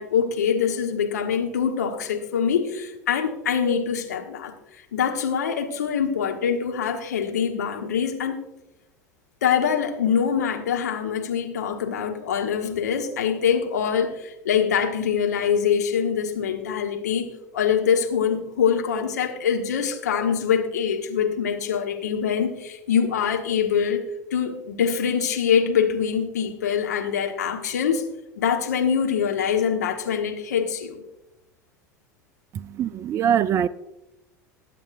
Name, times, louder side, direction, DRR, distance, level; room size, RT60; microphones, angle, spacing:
voice 1, 0.0-8.4 9.4-17.3 17.5-24.0 24.3-28.1 28.4-31.0, left 7 dB, 70° left, 1.4 m, -24 dB
voice 2, 32.5-33.7, right 9 dB, 30° right, 0.4 m, -23 dB
21.0 x 8.3 x 2.6 m
figure-of-eight pair, 75°, 9 cm